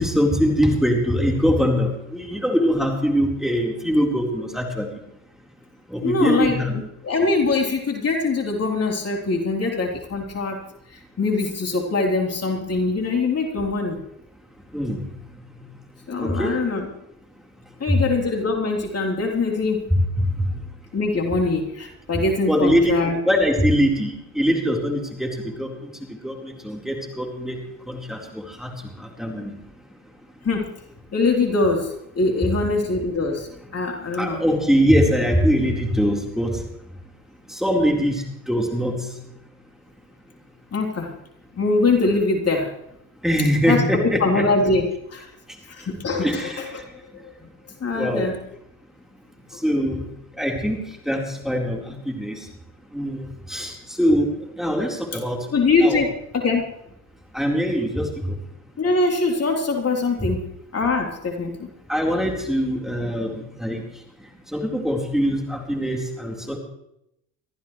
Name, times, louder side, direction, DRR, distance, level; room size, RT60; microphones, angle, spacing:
voice 1, 0.0-4.9 5.9-6.7 14.7-15.0 16.2-16.5 19.9-20.0 22.5-23.0 23.2-25.3 25.6-25.7 26.2-27.5 27.9-28.2 28.6-28.7 29.2-29.5 34.2-36.6 37.6-38.1 38.5-39.0 43.2-44.5 46.2-46.6 48.0-48.3 49.6-50.0 50.4-50.8 51.1-52.4 52.9-53.2 53.5-53.7 54.0-54.3 54.6-55.4 55.8-56.0 57.3-58.1 61.9-63.8 64.5-66.6, equal, ahead, 0 dB, 4.2 m, -22 dB
voice 2, 6.0-10.6 10.9-14.0 16.1-16.9 17.8-19.8 20.9-23.2 30.4-30.7 31.1-34.4 40.7-41.1 41.6-42.7 43.7-45.3 45.7-46.8 47.2-47.3 47.8-48.4 55.5-56.7 58.8-60.4 60.7-61.7, left 3 dB, 40° left, 1 dB, 3.7 m, -23 dB
24.0 x 14.5 x 3.2 m, 0.79 s
hypercardioid pair, 70°, 39 cm